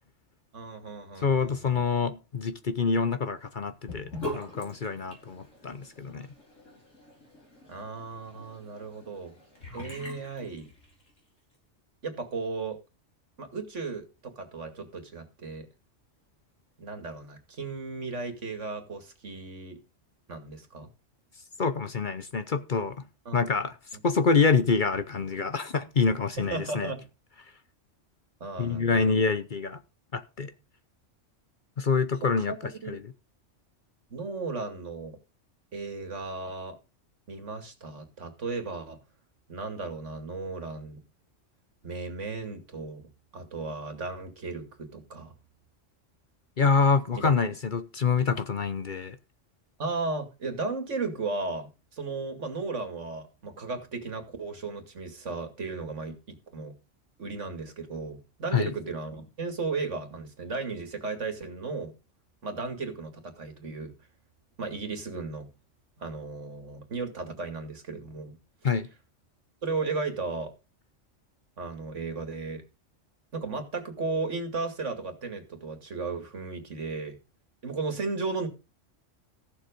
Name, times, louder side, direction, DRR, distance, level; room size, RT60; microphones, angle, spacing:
voice 1, 0.5-1.8 7.7-9.3 9.7-10.7 12.0-12.8 13.4-15.7 16.8-19.8 20.3-20.9 23.3-23.4 26.4-27.0 28.4-29.2 32.4-32.6 32.8-33.0 34.1-35.2 35.7-36.8 37.3-39.0 39.5-41.0 41.8-43.0 43.3-45.3 47.1-47.3 49.8-56.7 57.2-61.9 62.4-63.9 64.6-65.5 66.0-68.4 68.6-68.7 69.6-70.5 71.6-72.6 73.3-77.2 77.6-78.5, right 3 dB, 70° right, 2.5 m, -35 dB
voice 2, 1.2-6.3 21.6-23.0 23.3-23.8 24.0-26.9 28.6-29.8 30.1-30.5 31.8-33.0 46.6-49.2 58.5-58.7 68.6-68.9, left 5 dB, 45° left, 0.9 m, -26 dB
Sink (filling or washing) / Bathtub (filling or washing), 3.9-11.2, left 1 dB, 90° left, 5.6 m, -43 dB
14.5 x 7.3 x 5.2 m
omnidirectional pair, 1.3 m